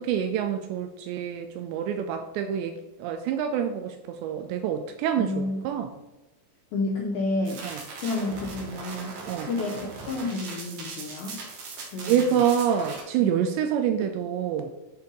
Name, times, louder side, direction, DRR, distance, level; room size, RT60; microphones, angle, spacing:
voice 1, 0.0-5.9 7.6-7.8 9.3-9.5 12.0-14.7, right 8 dB, 85° right, 6 dB, 2.6 m, -27 dB
voice 2, 5.2-5.6 6.7-7.6 8.0-11.4 11.9-12.4 13.2-13.3, left 2 dB, 90° left, -1 dB, 2.1 m, -30 dB
sound 1, 7.4-13.0, right 3 dB, 60° right, 2.8 m, -39 dB
7.7 x 4.5 x 5.3 m, 1.0 s
omnidirectional pair, 5.4 m